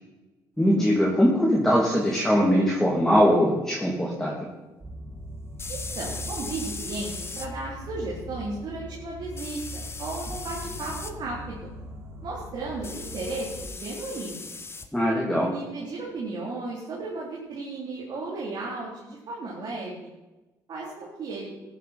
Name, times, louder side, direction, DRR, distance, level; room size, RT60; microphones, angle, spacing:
voice 1, 0.6-4.5 14.9-15.5, equal, 5° left, -4 dB, 2.9 m, -21 dB
sound 1, 2.1-2.2 5.6-7.5 9.4-11.1 12.8-14.9, left 4 dB, 30° left, 1.2 m, -38 dB
sound 2, 4.8-13.7, equal, 30° right, 3.7 m, -40 dB
voice 2, 5.7-11.7 12.2-14.5 15.5-20.1 20.7-21.5, right 3 dB, 55° right, -4 dB, 3.5 m, -35 dB
15.0 x 10.0 x 4.4 m, 1.1 s
supercardioid pair, 70°, 9 cm